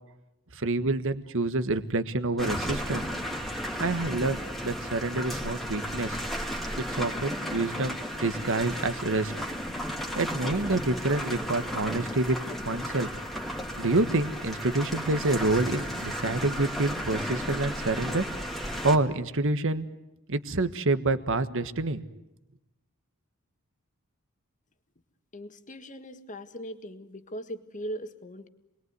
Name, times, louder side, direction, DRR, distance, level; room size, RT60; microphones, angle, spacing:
voice 1, 0.5-3.0 3.8-6.2 6.8-9.3 10.2-12.4 12.6-13.1 13.8-18.2 18.8-19.9 20.3-22.0, right 2 dB, 60° right, 11 dB, 1.5 m, -27 dB
sound 1, 2.4-19.0, equal, ahead, 2.4 m, -34 dB
voice 2, 25.3-28.5, equal, 35° left, 8 dB, 1.8 m, -39 dB
28.0 x 21.5 x 9.6 m, 0.94 s
head